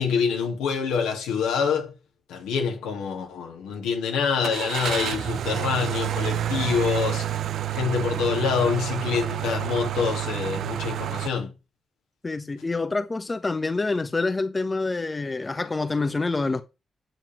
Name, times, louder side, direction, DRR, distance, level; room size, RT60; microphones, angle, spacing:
voice 1, 0.0-1.9 2.3-7.3 7.7-11.5, left 6 dB, 80° left, 3.0 m, -26 dB
Car / Engine starting, 4.4-11.3, right 11 dB, 70° right, 0.6 m, -29 dB
voice 2, 12.2-16.6, left 3 dB, 30° left, 1.2 m, -27 dB
9.0 x 7.4 x 4.6 m
hypercardioid pair, 45°, 0 cm